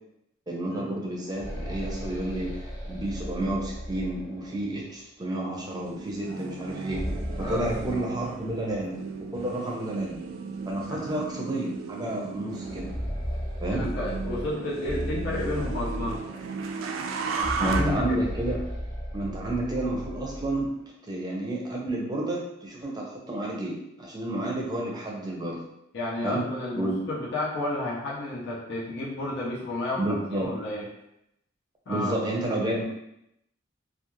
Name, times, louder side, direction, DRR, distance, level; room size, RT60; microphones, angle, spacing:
voice 1, 0.5-9.0 9.3-10.2 10.7-12.9 13.6-13.9 17.6-18.6 19.1-20.7 21.1-25.6 26.2-26.4 26.8-27.0 30.0-30.5 31.9-32.8, right 1 dB, 20° right, -2 dB, 0.6 m, -30 dB
sound 1, 1.2-4.8 6.6-8.8 9.1-9.2 10.1-10.2 10.7-10.8 12.5-16.6 17.3-20.7, equal, 25° left, 0.7 m, -35 dB
sound 2, 5.5-17.8, right 5 dB, 75° right, 0.3 m, -36 dB
voice 2, 7.4-7.7 10.9-11.0 13.7-16.2 17.4-18.2 25.9-30.9 31.9-32.1, left 1 dB, 60° left, -5 dB, 0.6 m, -31 dB
2.4 x 2.3 x 3.0 m, 0.81 s
head